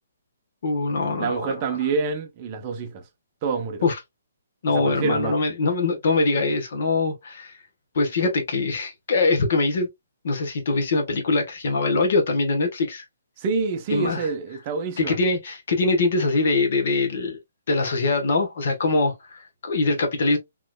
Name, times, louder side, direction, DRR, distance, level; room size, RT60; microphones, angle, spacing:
voice 1, 0.6-1.8 3.8-4.0 4.6-7.6 7.9-9.9 10.2-13.0 13.9-14.3 15.0-17.4 17.7-20.4, left 3 dB, 50° left, 1.1 m, -23 dB
voice 2, 1.2-3.0 3.4-3.8 4.7-5.3 13.4-15.2, right 4 dB, 25° right, 0.6 m, -27 dB
4.2 x 3.0 x 2.3 m
hypercardioid pair, 170°, 0 cm